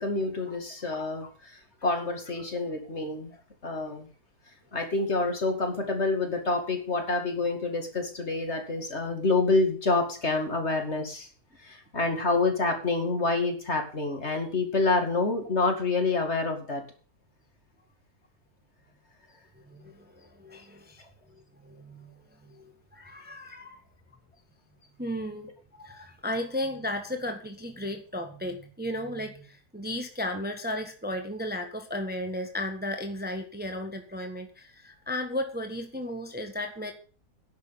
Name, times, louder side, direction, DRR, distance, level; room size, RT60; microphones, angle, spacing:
voice 1, 0.0-1.5 1.8-3.3 3.6-4.1 4.7-11.3 11.6-16.8, left 3 dB, 45° left, 4 dB, 2.6 m, -27 dB
voice 2, 19.7-21.0 21.6-22.1 22.5-23.8 25.0-36.9, left 1 dB, 5° right, 5 dB, 1.4 m, -35 dB
10.5 x 6.6 x 8.7 m, 0.40 s
omnidirectional pair, 1.7 m